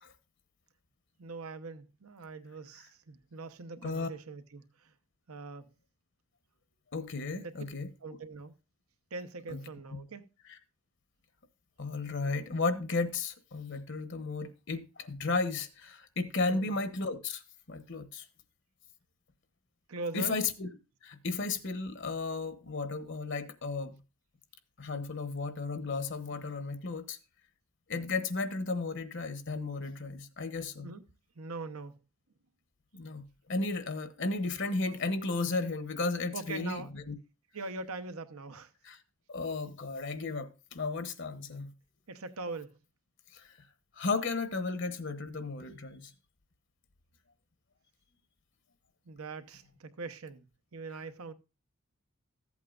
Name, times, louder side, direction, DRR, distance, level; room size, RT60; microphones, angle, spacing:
voice 1, 1.2-4.7 5.3-5.7 7.4-7.5 8.0-8.5 9.1-10.2 16.5-16.7 19.9-20.4 30.8-31.0 31.4-32.0 36.3-36.9 37.5-38.7 42.1-42.7 49.1-50.4 50.7-51.3, right 3 dB, 80° right, 0.9 m, -42 dB
voice 2, 6.9-7.9 9.5-9.6 9.9-10.0 10.5-10.6 11.8-17.4 17.7-18.2 20.1-20.7 21.0-24.0 24.8-27.2 27.9-30.9 32.9-37.1 38.8-39.0 39.3-41.7 43.3-43.7 44.0-46.1, left 3 dB, 55° left, 0.9 m, -34 dB
14.5 x 8.3 x 2.4 m
head